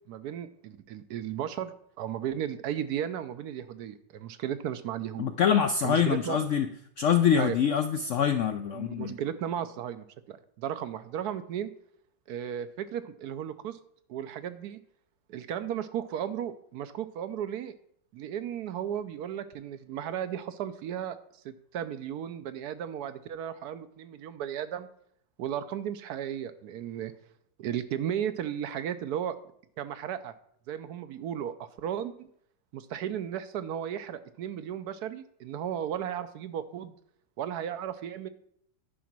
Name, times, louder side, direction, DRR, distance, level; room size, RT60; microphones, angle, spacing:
voice 1, 0.1-5.3 5.8-6.4 7.4-7.6 8.7-11.7 12.3-13.8 14.1-14.8 15.3-17.7 18.1-21.2 21.4-24.9 25.4-27.1 27.6-29.4 29.8-30.3 30.7-32.3 32.7-37.0 37.4-38.3, right 9 dB, 75° right, 12 dB, 1.1 m, -35 dB
voice 2, 5.2-6.7 7.0-9.1, left 8 dB, 75° left, 7 dB, 0.7 m, -25 dB
10.0 x 5.0 x 5.9 m, 0.68 s
omnidirectional pair, 1.9 m